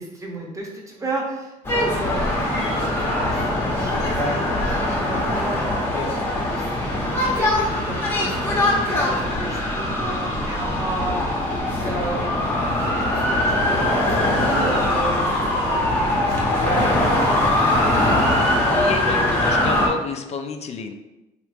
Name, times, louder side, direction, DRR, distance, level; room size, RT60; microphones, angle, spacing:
voice 1, 0.0-6.0 6.3-12.2 12.7-18.1, right 2 dB, 20° right, -1 dB, 0.8 m, -33 dB
sound 1, 1.6-19.9, left 1 dB, 15° left, 0.8 m, -21 dB
voice 2, 18.7-20.9, left 5 dB, 40° left, 6 dB, 0.4 m, -30 dB
3.0 x 2.4 x 3.3 m, 0.99 s
cardioid pair, 110°, 17 cm